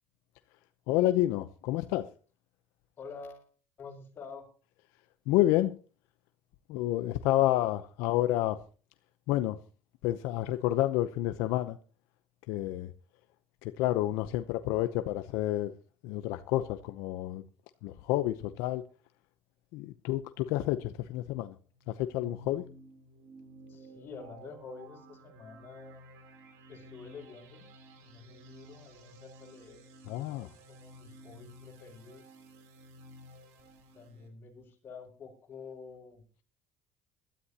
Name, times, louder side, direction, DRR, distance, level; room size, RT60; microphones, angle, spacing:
voice 1, 0.9-2.0 5.3-5.7 6.7-8.6 9.3-9.6 10.0-11.8 12.5-12.9 13.6-15.7 16.0-17.4 17.8-18.8 19.7-21.5 21.9-22.6 30.1-30.5, left 15 dB, 85° left, 0.7 m, -29 dB
voice 2, 3.0-3.5 3.8-4.5 23.7-26.0 26.7-27.7 28.0-29.8 30.2-32.3 33.9-36.2, left 5 dB, 40° left, 5.5 m, -48 dB
sound 1, 21.7-34.3, right 1 dB, 85° right, 3.2 m, -53 dB
21.0 x 13.0 x 2.9 m
cardioid pair, 120°, 5 cm